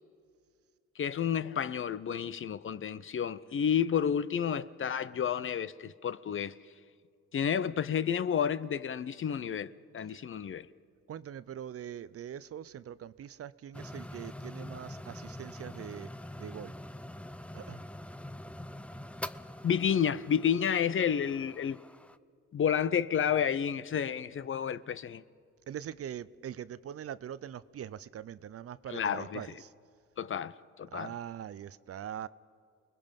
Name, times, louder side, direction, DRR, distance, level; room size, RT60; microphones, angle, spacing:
voice 1, 1.0-6.6 7.3-10.7 19.6-21.8 22.5-25.2 28.9-29.4 30.2-31.1, left 8 dB, 45° left, 0.7 m, -30 dB
voice 2, 11.1-16.1 16.4-16.7 17.5-17.8 25.7-29.7 30.9-32.3, right 9 dB, 50° right, 0.6 m, -42 dB
sound 1, 13.7-22.2, left 1 dB, 5° left, 0.6 m, -44 dB
29.0 x 20.5 x 5.3 m
cardioid pair, 90°, 30 cm